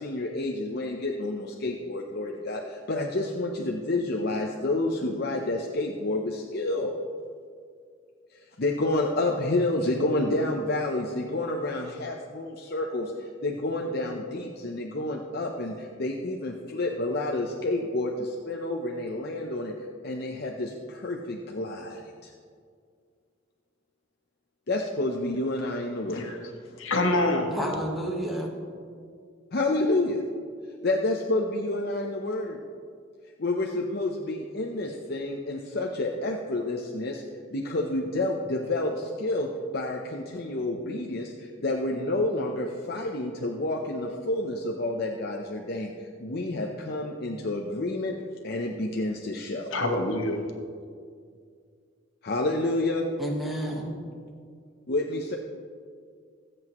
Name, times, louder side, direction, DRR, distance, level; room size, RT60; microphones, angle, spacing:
voice 1, 0.0-6.9 8.3-19.7 20.0-22.3 24.7-26.3 29.5-30.2 30.8-32.6 33.4-37.2 37.5-45.9 46.2-48.2 48.4-49.7 52.2-53.1 54.9-55.4, left 2 dB, 55° left, 0.8 m, -29 dB
voice 2, 26.1-26.4 26.8-27.6 49.7-50.4, left 1 dB, 85° left, 1.4 m, -26 dB
voice 3, 27.5-28.5 53.2-53.9, equal, ahead, 1.4 m, -30 dB
21.5 x 7.8 x 3.1 m
head